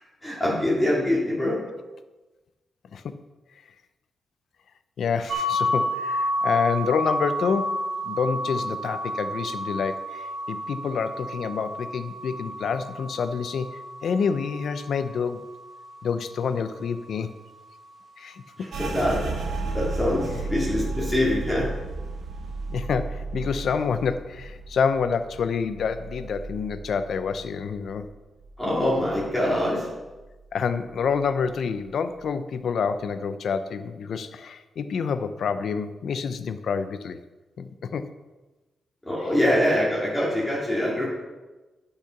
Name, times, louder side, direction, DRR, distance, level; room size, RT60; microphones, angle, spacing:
voice 1, 0.2-1.6 18.6-21.7 28.6-29.9 39.1-41.1, left 1 dB, 15° left, -7 dB, 2.4 m, -24 dB
voice 2, 5.0-13.7 14.0-15.4 16.0-17.3 18.2-18.7 22.7-28.1 30.5-37.2 37.6-38.1 39.3-39.4, left 6 dB, 70° left, 11 dB, 0.5 m, -28 dB
sound 1, 5.3-17.0, equal, 50° right, 1.1 m, -31 dB
sound 2, 18.7-28.1 28.4-29.6 30.0-30.4 30.9-31.5, right 3 dB, 80° right, 1.9 m, -34 dB
10.5 x 5.7 x 5.8 m, 1.2 s
wide cardioid pair, 125°, 0 cm